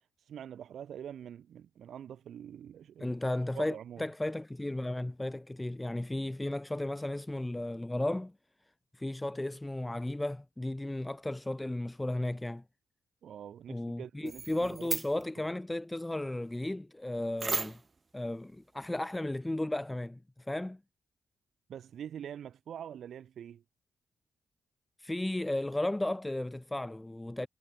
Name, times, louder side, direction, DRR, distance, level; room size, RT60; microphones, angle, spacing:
voice 1, 0.3-3.2 3.5-4.0 13.2-14.9 21.7-23.6, right 9 dB, 70° right, 0.3 m, -45 dB
voice 2, 3.0-8.3 8.9-12.6 13.7-17.8 18.1-20.8 25.0-27.5, left 1 dB, 10° left, 0.6 m, -34 dB
sound 1, 14.3-15.3 17.4-18.0, right 4 dB, 30° right, 0.8 m, -35 dB
cardioid pair, 85°, 0 cm